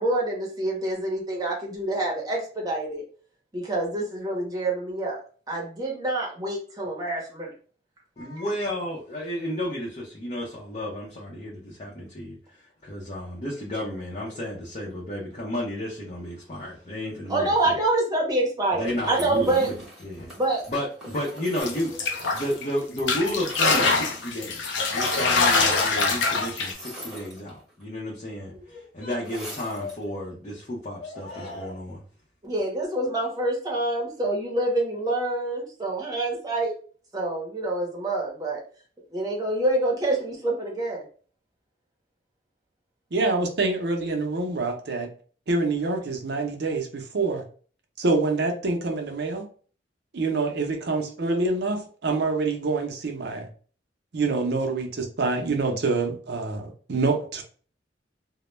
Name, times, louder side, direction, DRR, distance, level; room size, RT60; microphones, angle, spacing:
voice 1, 0.0-3.0 3.5-5.2 5.5-7.5 17.3-19.7 20.4-20.6 32.4-36.7 37.1-38.6 39.1-41.0, right 2 dB, 20° right, 0.7 m, -26 dB
voice 2, 8.2-17.8 18.7-20.3 20.7-32.0, left 1 dB, 35° left, 0.6 m, -32 dB
sound 1, 19.1-22.9 23.1-24.3 24.8-25.5 26.6-27.8 29.2-30.0, equal, 5° right, 0.9 m, -41 dB
sound 2, 21.6-22.6 23.0-26.7, left 4 dB, 85° left, 0.5 m, -24 dB
voice 3, 43.1-45.1 45.5-47.4 48.0-49.5 50.1-53.5 54.1-57.4, right 3 dB, 65° right, 0.6 m, -26 dB
2.2 x 2.1 x 3.0 m
head